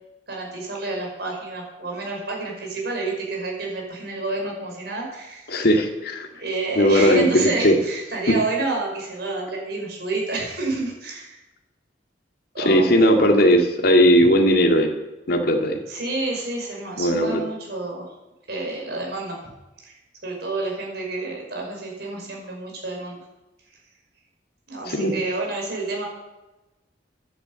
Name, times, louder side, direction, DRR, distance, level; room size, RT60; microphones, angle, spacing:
voice 1, 0.3-5.7 6.4-11.4 12.5-12.9 15.9-18.1 18.5-19.4 19.8-20.0 20.2-23.2 24.7-26.1, right 3 dB, 65° right, -1 dB, 5.7 m, -29 dB
voice 2, 5.5-6.3 6.8-7.8 12.6-14.9 15.3-15.8 17.0-17.4 24.9-25.1, equal, 60° left, 3 dB, 2.1 m, -17 dB
11.0 x 10.0 x 8.9 m, 1.0 s
head